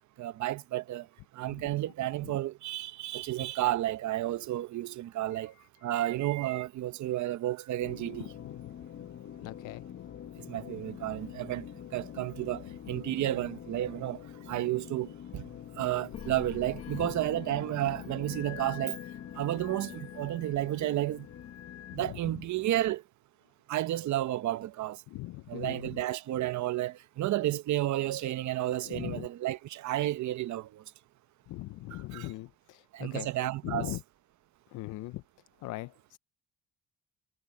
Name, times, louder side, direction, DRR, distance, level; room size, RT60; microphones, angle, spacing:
voice 1, 0.2-1.1 1.3-5.5 5.8-8.3 10.5-11.7 11.9-14.2 14.5-15.5 15.8-19.0 19.3-21.3 21.9-23.0 23.7-25.0 25.5-30.8 31.9-32.3 32.9-34.0, right 14 dB, 70° right, 0.8 m, -32 dB
sound 1, 7.8-22.0, left 10 dB, 50° left, 0.9 m, -44 dB
voice 2, 9.4-9.8 16.9-17.1 22.0-22.2 25.1-26.0 28.9-29.3 31.5-33.3 33.6-34.0 34.7-35.2 35.6-36.2, left 18 dB, 90° left, 0.6 m, -39 dB
cardioid pair, 90°, 30 cm